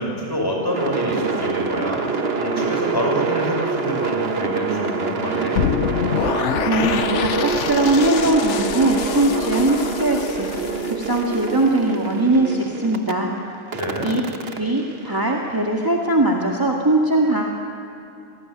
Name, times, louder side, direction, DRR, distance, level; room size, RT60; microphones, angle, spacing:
voice 1, 0.0-5.6 13.7-14.1, equal, 20° left, -1 dB, 6.3 m, -27 dB
sound 1, 0.7-13.1 13.7-15.8, right 4 dB, 55° right, 1.5 m, -26 dB
sound 2, 5.6-11.6, left 8 dB, 75° left, 1.1 m, -26 dB
voice 2, 6.7-10.5 10.9-13.3 14.0-14.2 14.5-17.5, right 2 dB, 15° right, -1 dB, 2.0 m, -20 dB
28.0 x 19.0 x 9.6 m, 2.7 s
omnidirectional pair, 1.2 m